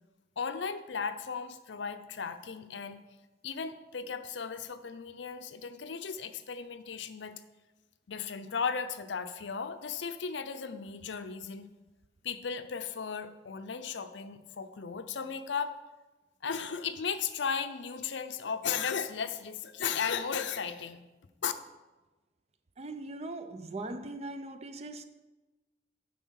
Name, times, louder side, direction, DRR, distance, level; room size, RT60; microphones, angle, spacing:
voice 1, 0.4-3.0 3.4-7.3 8.1-11.7 12.2-15.8 16.4-21.0 21.4-21.5, left 6 dB, 75° left, 0.6 m, -35 dB
voice 2, 22.8-25.0, right 2 dB, 35° right, 0.5 m, -40 dB
9.2 x 4.7 x 6.3 m
head